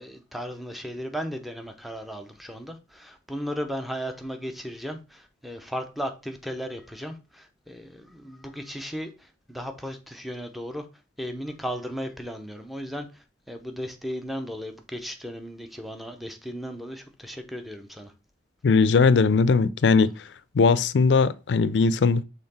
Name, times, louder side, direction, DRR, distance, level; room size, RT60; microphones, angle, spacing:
voice 1, 0.0-10.8 11.2-13.1 13.5-18.1, equal, ahead, 0.7 m, -35 dB
voice 2, 18.6-20.1 20.5-22.2, left 4 dB, 80° left, 0.4 m, -19 dB
5.6 x 3.9 x 4.2 m
head